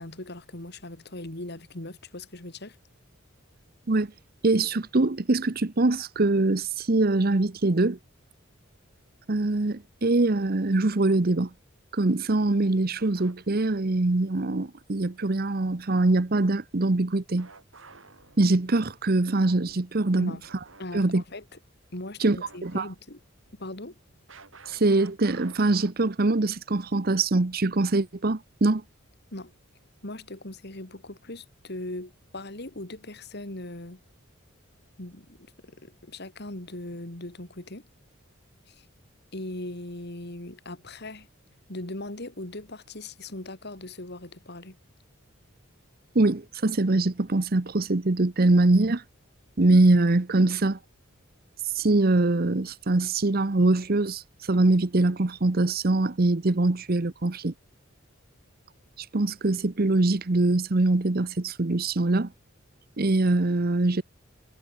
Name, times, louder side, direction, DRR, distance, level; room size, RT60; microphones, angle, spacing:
voice 1, 0.0-2.8 20.2-20.5 20.8-21.4 21.9-23.2 23.6-24.0 29.3-29.5 30.0-34.0 35.0-37.9 38.7-38.9 39.3-41.3 41.7-44.8, left 1 dB, 50° left, 2.7 m, -39 dB
voice 2, 4.4-8.0 9.3-11.5 11.9-17.5 18.4-20.3 20.9-21.2 22.2-22.9 24.7-28.8 46.1-49.0 49.6-50.8 51.7-54.2 54.5-57.5 59.0-62.3 63.0-64.0, right 2 dB, 45° right, 0.9 m, -23 dB
sound 1, 13.0-13.8 17.4-18.9 20.4-20.9 21.2-21.3 22.4-23.2 24.3-25.9, right 4 dB, 70° right, 5.9 m, -51 dB
head